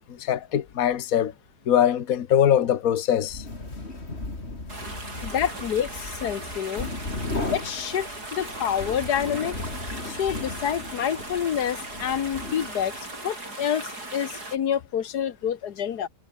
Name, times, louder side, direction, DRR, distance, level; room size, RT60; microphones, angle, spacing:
voice 1, 0.2-1.3 1.7-3.4, left 10 dB, 65° left, 1.5 m, -22 dB
sound 1, 3.2-13.1, left 2 dB, 40° left, 4.0 m, -36 dB
sound 2, 4.7-14.6, right 2 dB, 90° right, 7.8 m, -38 dB
voice 2, 5.2-6.9 7.3-9.6 10.1-16.1, left 9 dB, 90° left, 1.8 m, -28 dB
omnidirectional pair, 1.6 m